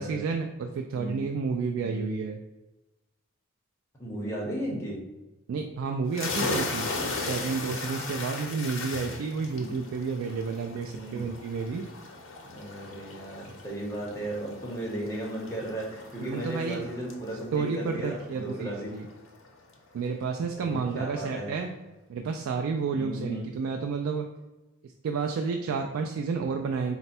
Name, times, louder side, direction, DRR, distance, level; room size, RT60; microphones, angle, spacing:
voice 1, 0.0-2.4 5.5-11.9 16.2-16.9 17.5-19.1 19.9-21.7 22.1-24.3 24.8-27.0, right 5 dB, 75° right, 3 dB, 0.3 m, -31 dB
voice 2, 0.9-1.3 1.8-2.1 4.0-5.0 9.5-9.8 10.9-11.2 12.4-18.9 20.5-21.5 22.9-23.5, right 1 dB, 15° left, -3 dB, 0.9 m, -35 dB
sound 1, 6.1-19.5, left 3 dB, 70° left, 0.7 m, -37 dB
4.1 x 2.2 x 4.2 m, 1.1 s
head